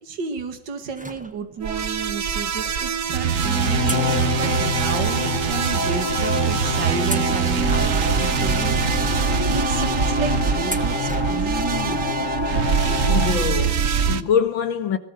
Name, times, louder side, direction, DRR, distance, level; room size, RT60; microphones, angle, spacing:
voice 1, 0.0-12.3, right 5 dB, 65° right, 2.7 m, -32 dB
sound 1, 0.9-1.8 2.6-2.7 3.8-5.3 5.6-5.7 6.4-6.6 7.0-8.3 8.9-9.0 10.6-11.6 11.9-12.0 13.2-13.3 13.6-13.7, right 1 dB, 5° right, 0.9 m, -36 dB
sound 2, 1.6-14.2, right 7 dB, 50° right, 1.3 m, -23 dB
sound 3, 3.3-13.3, left 4 dB, 30° left, 1.2 m, -27 dB
voice 2, 13.1-15.0, left 7 dB, 80° left, 2.4 m, -24 dB
22.0 x 18.5 x 8.0 m
omnidirectional pair, 2.1 m